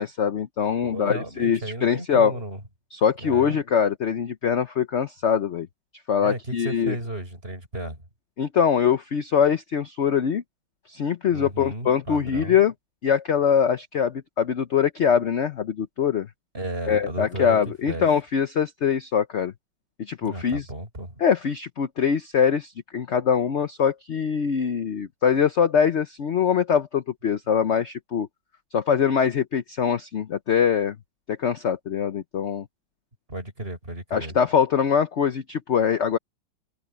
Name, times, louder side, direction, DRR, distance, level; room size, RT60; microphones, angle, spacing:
voice 1, 0.0-2.4 2.9-5.7 6.1-7.0 8.4-10.4 10.9-12.7 13.0-16.3 16.9-19.5 20.0-20.7 21.2-28.3 28.7-31.0 31.3-32.7 34.1-36.2, left 7 dB, 60° left, 0.7 m, -23 dB
voice 2, 0.8-2.6 3.2-3.6 6.2-8.0 11.3-12.6 16.5-17.6 17.8-18.0 20.2-21.2 33.3-34.3, right 1 dB, 30° right, 6.8 m, -34 dB
omnidirectional pair, 2.2 m